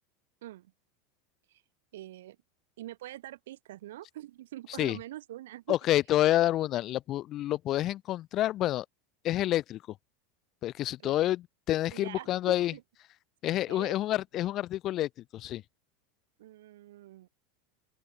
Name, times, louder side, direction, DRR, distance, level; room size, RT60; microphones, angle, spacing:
voice 1, 0.4-0.7 1.5-1.6 1.9-2.4 2.8-5.8 11.0-11.2 11.9-12.8 13.7-14.2 16.4-17.3, right 14 dB, 85° right, 5.9 m, -44 dB
voice 2, 5.7-8.8 9.2-9.8 10.6-12.7 13.4-15.6, left 14 dB, 40° left, 1.1 m, -28 dB
open air
supercardioid pair, 140°, 0 cm